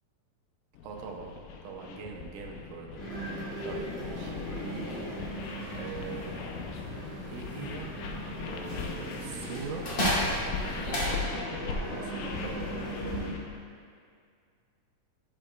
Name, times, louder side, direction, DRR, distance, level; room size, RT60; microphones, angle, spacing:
sound 1, 0.7-13.6, left 5 dB, 80° left, 2.3 m, -40 dB
voice 1, 0.8-3.0 3.6-5.0 5.7-6.7 7.3-7.9 8.5-9.9 10.4-12.7, right 5 dB, 75° right, 1 dB, 2.3 m, -42 dB
sound 2, 2.9-13.3, equal, 60° left, 3.4 m, -38 dB
sound 3, 3.6-11.1, equal, 40° left, 2.2 m, -37 dB
11.5 x 8.6 x 2.3 m, 2.2 s
omnidirectional pair, 4.0 m